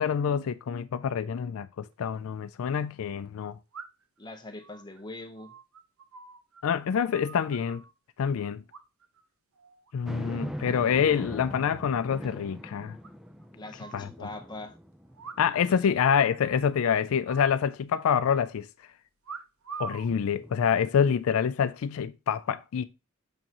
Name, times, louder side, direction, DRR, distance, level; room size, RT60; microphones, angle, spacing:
voice 1, 0.0-3.5 6.6-7.8 8.2-8.6 9.9-13.0 13.9-14.3 15.4-18.7 19.8-22.9, left 7 dB, 75° left, 0.4 m, -26 dB
sound 1, 1.9-2.0 3.7-4.2 4.6-6.6 6.9-7.9 8.7-9.2 9.5-9.9 10.3-10.9 11.1-11.2 11.5-11.6 11.9-12.0 12.3-12.4 13.0-14.1 15.1-16.1 16.4-16.8 17.2-18.2 19.2-20.1 20.9-21.2, right 5 dB, 85° right, 0.8 m, -45 dB
voice 2, 4.2-5.5 13.5-14.8 15.7-16.0, left 2 dB, 20° left, 0.9 m, -42 dB
sound 2, 10.0-15.6 16.1-16.2 20.1-21.2, equal, ahead, 0.5 m, -41 dB
6.4 x 5.8 x 2.9 m
head